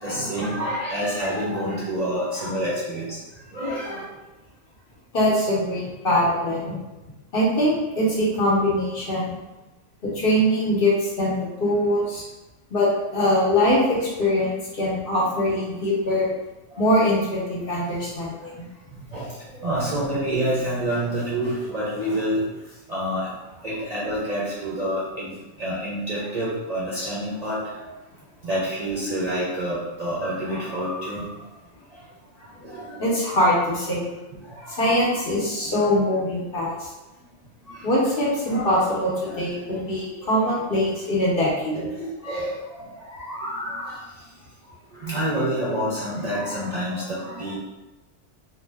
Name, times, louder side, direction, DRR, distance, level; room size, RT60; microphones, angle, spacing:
voice 1, 0.0-3.0 3.5-4.0 19.1-19.3 19.6-22.4 22.9-23.3 23.6-25.3 25.6-27.7 28.4-31.2 32.6-32.8 34.8-35.1 38.5-39.4 41.7-42.8 43.1-44.0 45.0-47.5, equal, 45° right, -7 dB, 0.5 m, -27 dB
voice 2, 5.1-6.8 7.3-9.4 10.0-12.2 12.7-16.3 16.8-18.7 33.0-34.1 34.7-36.9 37.8-41.8, left 1 dB, 55° left, -5 dB, 0.9 m, -22 dB
2.6 x 2.1 x 3.3 m, 1.1 s
omnidirectional pair, 1.2 m